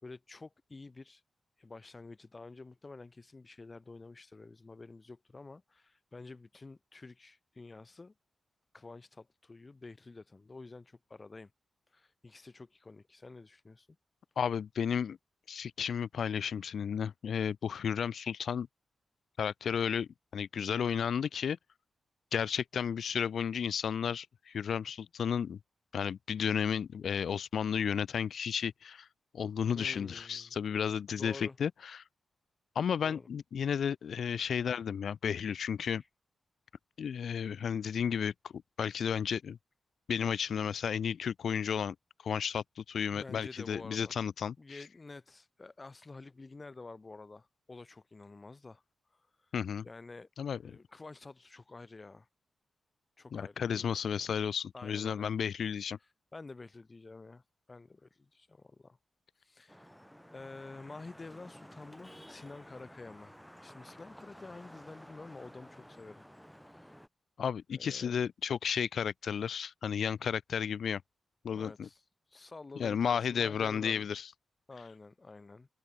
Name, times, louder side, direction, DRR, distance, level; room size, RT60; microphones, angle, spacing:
voice 1, 0.0-1.2 1.6-8.1 8.7-11.5 11.9-13.9 29.7-30.5 31.1-31.6 33.0-33.3 43.1-44.2 44.6-48.8 49.1-49.5 49.8-50.3 50.6-52.3 53.2-54.3 54.7-55.3 56.3-57.4 57.7-59.0 59.4-59.9 60.3-63.3 63.6-66.2 66.6-67.0 67.7-68.2 71.5-72.0 72.3-74.1 74.7-75.7, left 3 dB, 25° left, 5.1 m, -49 dB
voice 2, 14.4-15.2 15.5-18.7 19.4-21.6 22.3-25.6 25.9-29.1 29.3-32.0 32.8-36.0 37.0-38.5 38.8-39.6 40.1-42.0 42.2-44.8 49.5-49.8 50.4-50.8 53.3-56.0 67.4-71.0 71.4-71.9 72.8-74.3, left 7 dB, 75° left, 0.7 m, -33 dB
Vehicle horn car horn honking / Traffic noise roadway noise, 59.7-67.1, equal, ahead, 4.6 m, -53 dB
wide cardioid pair, 135°, 0 cm